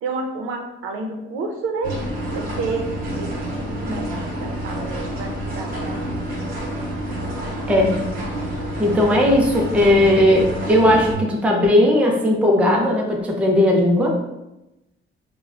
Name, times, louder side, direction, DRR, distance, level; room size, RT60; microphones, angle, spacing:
voice 1, 0.0-2.0 2.3-6.1, right 3 dB, 80° right, 3 dB, 0.5 m, -30 dB
sound 1, 1.8-11.1, right 1 dB, 45° right, 0.8 m, -28 dB
voice 2, 8.8-14.2, left 1 dB, 5° right, -1 dB, 0.3 m, -17 dB
4.4 x 2.1 x 2.3 m, 0.93 s
cardioid pair, 165°, 21 cm